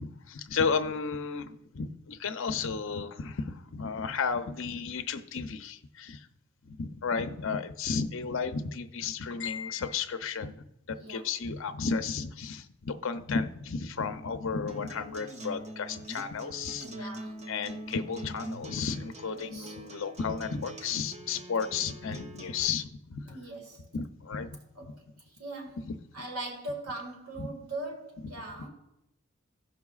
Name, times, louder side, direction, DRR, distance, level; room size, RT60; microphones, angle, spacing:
voice 1, 0.0-6.3 6.6-17.1 17.5-23.4 23.9-24.9 25.8-26.0 27.4-27.5 28.6-28.7, left 5 dB, 60° left, 0.6 m, -33 dB
voice 2, 10.9-11.2 16.8-17.4 19.3-19.7 23.2-23.8 24.8-25.8 26.1-28.7, right 2 dB, 85° right, 1.8 m, -41 dB
Acoustic guitar, 14.7-22.7, right 1 dB, 30° right, 0.6 m, -44 dB
17.0 x 5.9 x 2.4 m
head